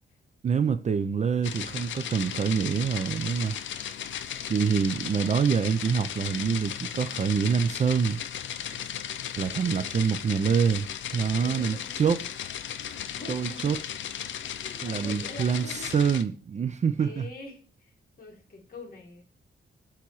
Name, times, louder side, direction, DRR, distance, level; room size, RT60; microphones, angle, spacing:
voice 1, 0.4-3.6 4.5-8.2 9.4-10.9 11.1-12.2 13.3-13.8 14.8-17.3, right 6 dB, 35° right, 0.4 m, -26 dB
sound 1, 1.4-16.2, left 9 dB, 65° left, 0.5 m, -36 dB
voice 2, 9.3-10.0 11.4-11.9 12.8-13.8 14.6-16.0 17.0-19.2, left 3 dB, 45° left, 1.7 m, -45 dB
8.3 x 3.0 x 4.6 m
wide cardioid pair, 170°, 21 cm